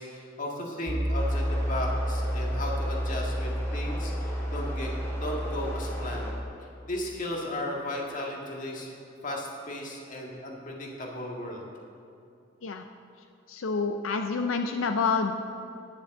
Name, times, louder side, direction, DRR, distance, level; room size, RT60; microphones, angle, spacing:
voice 1, 0.0-6.3 6.9-8.9 9.2-11.6, left 1 dB, 40° left, -1 dB, 1.8 m, -35 dB
Piano, 0.9-6.5, equal, 25° right, 0.7 m, -30 dB
sound 1, 1.2-6.3, left 1 dB, 10° left, 2.0 m, -42 dB
voice 2, 13.5-15.3, left 4 dB, 90° left, 6 dB, 0.5 m, -28 dB
10.5 x 6.8 x 7.7 m, 2.6 s
head